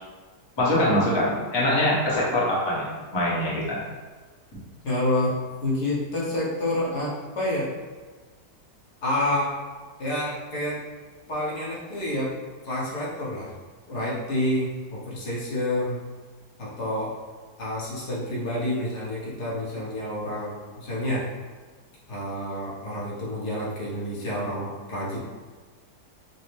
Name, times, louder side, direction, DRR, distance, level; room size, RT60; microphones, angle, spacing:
voice 1, 0.6-2.9 3.1-3.8, left 1 dB, 25° left, -6 dB, 0.6 m, -23 dB
voice 2, 4.8-5.4 5.6-7.7 9.0-9.5 10.0-10.8 11.3-12.3 12.6-13.5 13.9-16.0 16.6-17.1 17.6-21.3 22.1-25.2, left 1 dB, 75° left, -6 dB, 1.6 m, -28 dB
5.4 x 2.0 x 3.2 m, 1.4 s
omnidirectional pair, 1.8 m